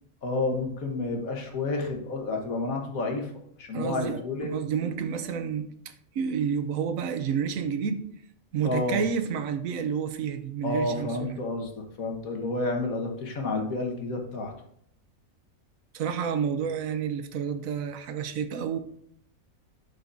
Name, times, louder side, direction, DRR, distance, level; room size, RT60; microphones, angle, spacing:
voice 1, 0.2-3.3 3.6-4.5 8.6-9.0 10.6-14.5, left 2 dB, 85° left, 3 dB, 1.7 m, -30 dB
voice 2, 3.7-8.0 8.5-11.4 15.9-18.8, right 7 dB, 80° right, 9 dB, 1.1 m, -30 dB
12.5 x 5.1 x 2.6 m, 0.68 s
omnidirectional pair, 1.4 m